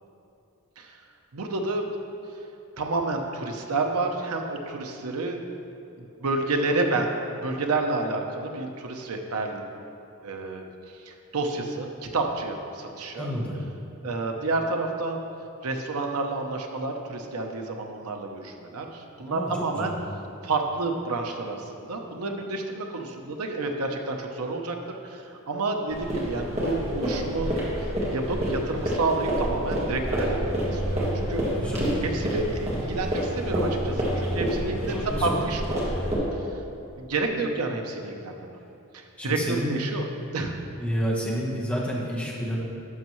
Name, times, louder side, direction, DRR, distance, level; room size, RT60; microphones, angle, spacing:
voice 1, 1.3-1.9 2.8-5.4 6.0-9.6 10.2-10.6 11.0-13.3 14.0-15.2 15.6-19.9 20.4-24.8 25.0-27.6 28.1-30.4 30.7-31.4 32.0-35.9 36.3-36.5 37.0-38.5 38.9-40.0 40.3-40.5, right 3 dB, 85° right, 3 dB, 0.8 m, -29 dB
voice 2, 13.2-13.5 19.3-19.9 31.5-31.8 34.9-35.3 39.2-39.8 40.8-42.6, equal, 5° left, -5 dB, 1.1 m, -29 dB
sound 1, 25.9-36.2, equal, 30° right, 1.5 m, -28 dB
11.0 x 6.2 x 3.1 m, 2.7 s
head